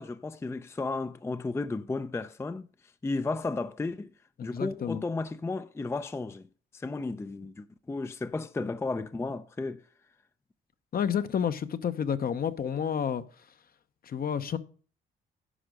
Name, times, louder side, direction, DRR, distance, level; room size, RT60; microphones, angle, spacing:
voice 1, 0.0-2.7 3.0-4.1 4.4-6.5 6.7-9.8, left 3 dB, 15° left, 0.4 m, -33 dB
voice 2, 4.4-5.0 10.9-13.2 14.0-14.6, left 8 dB, 50° left, 0.8 m, -30 dB
10.0 x 5.0 x 6.3 m
cardioid pair, 90°, 20 cm